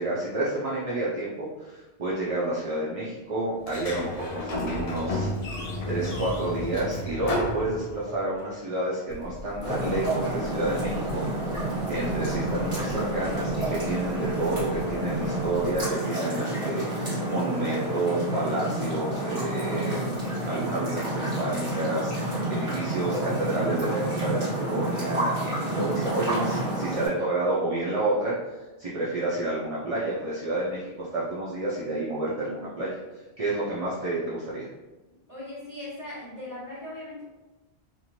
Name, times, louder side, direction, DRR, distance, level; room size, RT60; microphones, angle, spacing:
voice 1, 0.0-28.3 28.8-34.7, right 2 dB, 45° right, -8 dB, 0.5 m, -30 dB
Sliding door, 3.6-8.3, left 1 dB, 60° left, 0.4 m, -31 dB
sound 1, 9.1-15.8, left 1 dB, 85° left, 0.9 m, -42 dB
sound 2, 9.6-27.1, right 1 dB, 30° right, 1.5 m, -29 dB
voice 2, 35.3-37.2, left 1 dB, 20° left, -10 dB, 0.8 m, -39 dB
2.6 x 2.5 x 2.9 m, 1.1 s
omnidirectional pair, 1.1 m